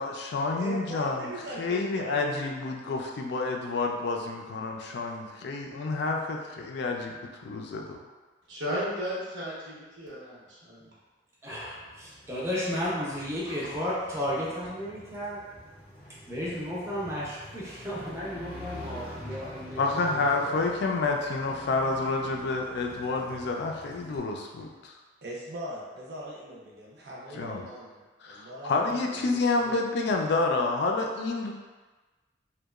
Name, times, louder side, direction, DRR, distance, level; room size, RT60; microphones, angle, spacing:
voice 1, 0.0-1.3 1.6-8.0 19.8-25.0 27.3-27.6 28.2-31.5, left 3 dB, 65° left, 1 dB, 0.3 m, -29 dB
voice 2, 0.6-2.6 25.2-29.8, right 1 dB, 60° right, -4 dB, 0.6 m, -40 dB
voice 3, 8.5-10.9, equal, 90° right, -8 dB, 0.9 m, -34 dB
voice 4, 11.4-15.4 16.3-20.6, equal, 15° right, -7 dB, 0.5 m, -33 dB
Motorcycle, 11.6-24.2, left 1 dB, 25° left, 0.6 m, -46 dB
2.8 x 2.1 x 2.3 m, 1.3 s
head